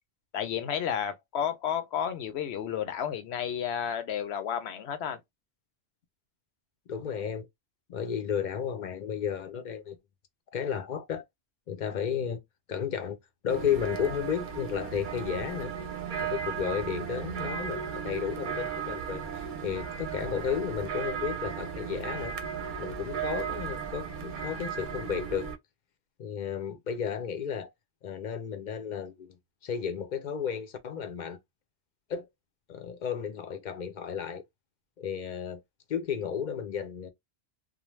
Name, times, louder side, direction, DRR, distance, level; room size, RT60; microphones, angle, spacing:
voice 1, 0.3-5.2, left 9 dB, 80° left, 0.9 m, -32 dB
voice 2, 6.9-7.5 7.9-10.0 10.5-11.2 11.7-12.4 12.7-13.2 13.4-15.7 16.2-22.3 22.8-25.5 26.2-27.7 28.0-29.4 29.6-31.4 32.1-32.3 32.7-34.4 35.0-35.6 35.9-37.1, left 8 dB, 55° left, 0.6 m, -33 dB
sound 1, 13.5-25.6, right 7 dB, 55° right, 0.7 m, -36 dB
2.5 x 2.0 x 3.1 m
omnidirectional pair, 1.1 m